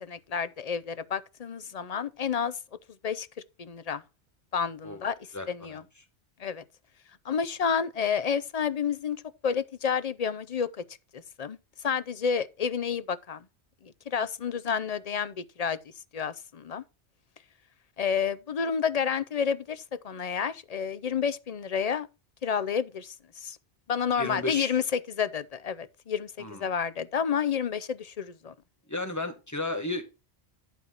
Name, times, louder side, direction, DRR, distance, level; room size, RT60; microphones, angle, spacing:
voice 1, 0.0-2.6 3.0-3.3 3.6-4.0 4.5-5.2 5.5-5.8 6.4-6.6 7.2-10.7 11.1-11.6 11.8-13.5 13.8-15.8 16.1-16.8 18.0-22.1 22.4-23.6 23.9-28.5, left 7 dB, 45° left, 0.6 m, -30 dB
voice 2, 5.3-5.8 24.2-24.8 26.4-26.6 28.9-30.0, left 2 dB, 15° left, 1.5 m, -33 dB
11.5 x 4.5 x 5.7 m
omnidirectional pair, 1.1 m